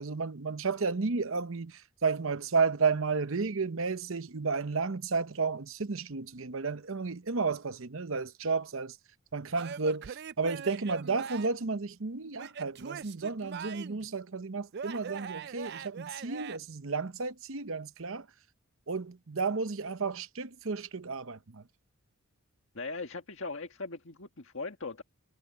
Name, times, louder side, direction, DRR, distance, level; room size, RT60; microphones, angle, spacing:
voice 1, 0.0-9.0 9.3-18.3 18.9-21.6, right 4 dB, 65° right, 0.9 m, -32 dB
Male speech man speaking / Yell / Laughter, 9.5-11.7 12.4-14.1 14.7-16.6, right 6 dB, 45° right, 0.4 m, -41 dB
voice 2, 22.8-25.0, left 3 dB, 60° left, 1.7 m, -39 dB
head